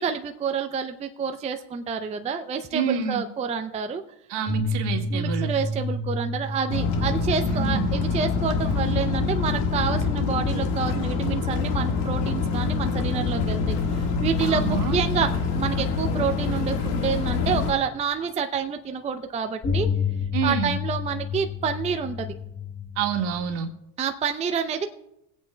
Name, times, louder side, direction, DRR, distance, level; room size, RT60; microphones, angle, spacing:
voice 1, 0.0-4.0 5.1-19.9 20.4-22.3 24.0-24.9, right 6 dB, 15° right, 7 dB, 0.4 m, -28 dB
voice 2, 2.7-3.2 4.3-5.5 7.5-7.9 14.4-15.0 20.3-20.8 22.9-23.7, right 7 dB, 60° right, 3 dB, 1.8 m, -28 dB
sound 1, 4.5-13.8 14.7-14.8 19.6-23.5, left 3 dB, 20° left, 1.1 m, -32 dB
sound 2, 6.7-17.7, left 4 dB, 75° left, 1.7 m, -25 dB
23.5 x 8.6 x 2.2 m, 0.85 s
supercardioid pair, 105°, 46 cm